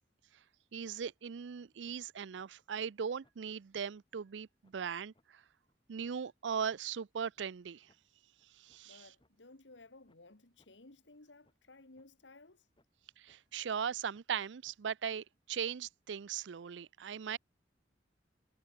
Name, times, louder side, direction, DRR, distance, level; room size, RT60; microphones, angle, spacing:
voice 1, 0.7-5.4 5.9-7.9 8.6-9.0 13.2-17.4, right 7 dB, 85° right, 0.5 m, -39 dB
sound 1, 1.0-1.2 1.6-2.0 2.4-2.5 2.9-3.0 3.2-3.4 3.7-3.8 4.3-4.4 4.6-4.7 5.1-5.3 5.7-6.6 7.0-7.1 7.4-7.5 7.9-8.0 8.4-9.3 9.7-9.8 10.1-10.3 10.6-10.7 11.1-11.2 11.4-11.7 12.0-12.1 12.5-13.0 13.3-13.4 13.8-13.9 14.1-14.3 14.6-14.8 15.2-15.3, left 1 dB, 30° left, 7.7 m, -72 dB
voice 2, 8.8-12.7, left 2 dB, 85° left, 2.1 m, -58 dB
head